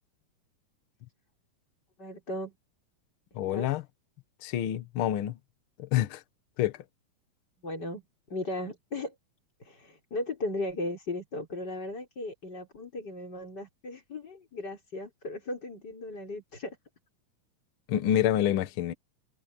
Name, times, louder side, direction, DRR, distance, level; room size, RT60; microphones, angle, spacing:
voice 1, 2.0-2.5 3.5-3.7 7.6-8.0 8.3-9.1 9.6-16.8, left 2 dB, 30° left, 6.2 m, -36 dB
voice 2, 3.3-3.8 4.4-5.4 5.8-6.2 6.6-6.8 17.9-18.9, left 11 dB, 80° left, 1.1 m, -27 dB
omnidirectional pair, 3.9 m